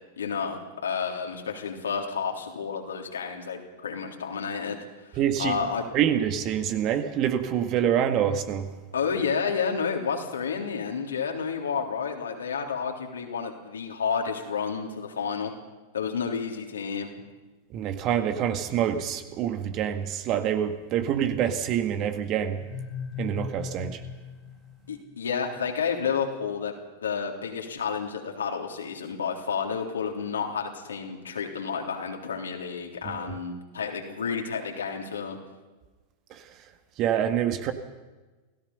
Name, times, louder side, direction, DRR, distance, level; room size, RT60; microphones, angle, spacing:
voice 1, 0.2-4.8 5.4-5.9 8.9-15.5 15.9-17.1 24.9-26.7 27.0-35.4, left 6 dB, 70° left, 1 dB, 3.5 m, -30 dB
voice 2, 5.2-5.5 5.9-8.7 17.7-22.6 23.2-24.0 36.3-36.4 37.0-37.7, right 9 dB, 35° right, 8 dB, 1.8 m, -26 dB
sound 1, 22.6-25.4, left 6 dB, 35° left, 2.7 m, -38 dB
28.5 x 17.5 x 5.6 m, 1.2 s
figure-of-eight pair, 90°, 0 cm